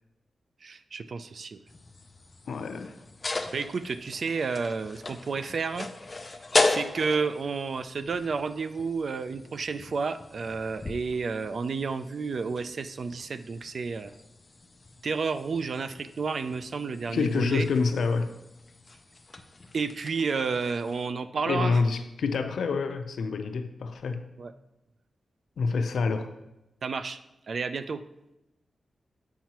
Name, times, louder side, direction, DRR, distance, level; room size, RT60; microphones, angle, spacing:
voice 1, 0.6-1.6 3.5-5.9 6.6-14.1 15.0-17.7 19.7-21.8 24.4-24.5 26.8-27.2 27.5-28.0, right 4 dB, 55° right, 11 dB, 0.3 m, -31 dB
sound 1, 1.7-21.1, left 3 dB, 30° left, 0.4 m, -36 dB
voice 2, 2.5-2.9 17.1-18.3 21.5-24.3 25.6-26.3, left 4 dB, 85° left, 7 dB, 0.5 m, -27 dB
7.4 x 5.5 x 2.9 m, 0.92 s
wide cardioid pair, 130°, 0 cm